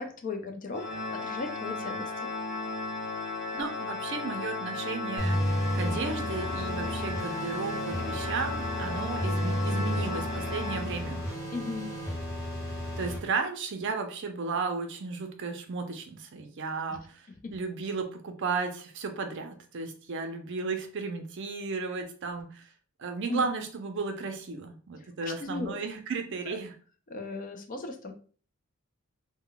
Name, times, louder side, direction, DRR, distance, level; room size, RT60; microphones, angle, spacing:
voice 1, 0.0-2.3 11.5-11.9 17.4-17.5 23.3-23.4 25.2-25.8 26.5-26.6 27.1-28.1, left 3 dB, 40° left, 6 dB, 0.4 m, -37 dB
Organ, 0.7-11.5, left 2 dB, 60° left, 0.9 m, -35 dB
voice 2, 3.5-11.2 13.0-17.3 17.5-22.7 23.0-26.7, right 4 dB, 55° right, 6 dB, 0.5 m, -34 dB
sound 1, 5.2-13.2, equal, 15° left, 0.7 m, -32 dB
2.2 x 2.1 x 3.7 m, 0.42 s
head